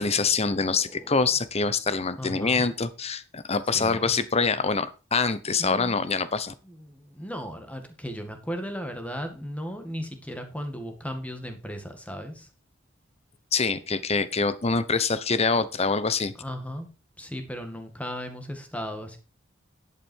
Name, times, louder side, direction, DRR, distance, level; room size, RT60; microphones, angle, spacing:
voice 1, 0.0-6.5 13.5-16.3, left 4 dB, 30° left, 14 dB, 0.9 m, -25 dB
voice 2, 2.2-2.6 3.7-4.1 5.6-6.0 6.7-12.5 16.4-16.9 17.2-19.2, equal, 5° left, 6 dB, 2.0 m, -36 dB
11.0 x 8.4 x 4.6 m, 0.33 s
head